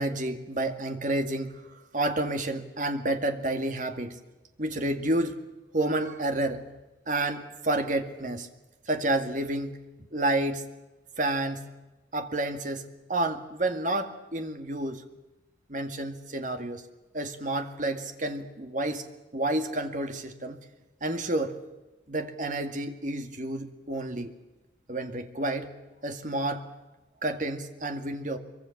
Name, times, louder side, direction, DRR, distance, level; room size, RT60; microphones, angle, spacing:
voice 1, 0.0-1.6 1.9-4.2 4.6-5.4 5.7-6.6 7.1-8.5 8.9-9.8 10.1-10.6 11.2-11.7 12.1-15.0 15.7-16.8 17.1-19.1 19.3-20.6 21.0-21.6 22.1-24.3 24.9-25.7 26.0-26.6 27.2-28.4, right 1 dB, 40° right, 6 dB, 2.1 m, -30 dB
24.0 x 24.0 x 7.3 m, 1.1 s
head